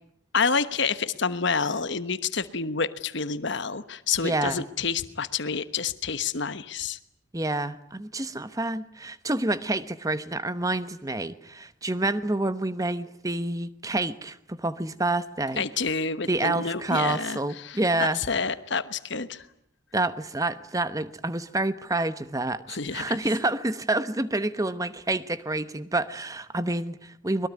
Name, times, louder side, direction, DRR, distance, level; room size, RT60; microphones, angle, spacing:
voice 1, 0.3-7.0 15.6-19.5 22.7-23.2, left 5 dB, 55° left, 13 dB, 1.2 m, -28 dB
voice 2, 4.2-4.6 7.3-15.6 16.3-18.2 19.9-27.5, right 2 dB, 15° right, 13 dB, 1.0 m, -28 dB
23.0 x 22.0 x 9.5 m, 0.74 s
head